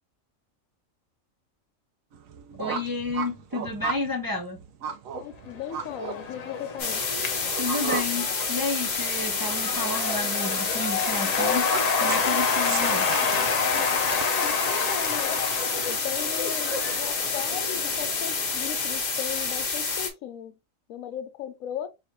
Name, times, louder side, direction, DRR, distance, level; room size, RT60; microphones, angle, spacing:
sound 1, 2.1-14.2, right 6 dB, 80° right, 1.1 m, -37 dB
voice 1, 2.6-4.6 7.6-11.7 12.0-13.1, left 3 dB, 25° right, 0.5 m, -31 dB
voice 2, 5.1-7.0 14.2-15.4 15.9-20.6 20.9-21.9, left 10 dB, 85° left, 1.1 m, -37 dB
Cheering / Applause / Crowd, 5.5-18.9, left 5 dB, 70° left, 0.3 m, -29 dB
sound 2, 6.8-20.1, left 4 dB, 40° left, 0.8 m, -29 dB
4.0 x 2.9 x 3.0 m
omnidirectional pair, 1.4 m